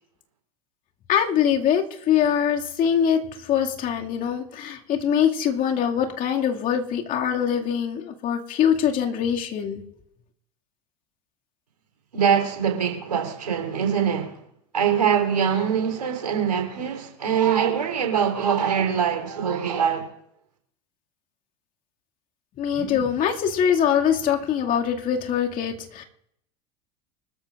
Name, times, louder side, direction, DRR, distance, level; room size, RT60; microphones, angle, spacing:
voice 1, 1.1-3.2 3.5-9.8 22.6-26.0, left 8 dB, 45° left, 2.3 m, -23 dB
voice 2, 12.1-14.4 14.7-20.1, right 7 dB, 85° right, 3.6 m, -23 dB
25.5 x 13.5 x 2.5 m
hypercardioid pair, 80°, 19 cm